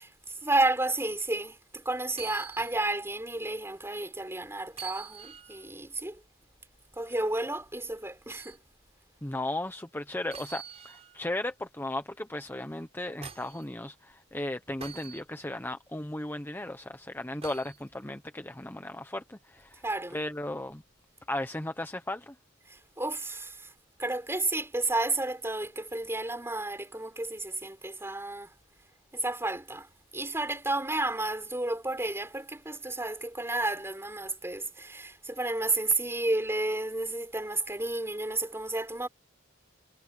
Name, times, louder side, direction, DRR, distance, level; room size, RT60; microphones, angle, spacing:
voice 1, 0.0-6.2 7.0-8.6 19.8-20.2 22.7-23.7 24.0-28.5 29.1-29.9 30.1-39.1, right 2 dB, 15° right, 5.1 m, -31 dB
sound 1, 2.1-2.8 3.2-3.3 4.7-5.7 8.3-8.6 10.3-11.3 12.7-13.6 14.8-15.2 17.4-17.8 19.6-19.7, right 7 dB, 35° right, 3.5 m, -44 dB
voice 2, 9.2-19.8 20.1-20.8 21.3-22.4, left 1 dB, 10° left, 0.9 m, -36 dB
head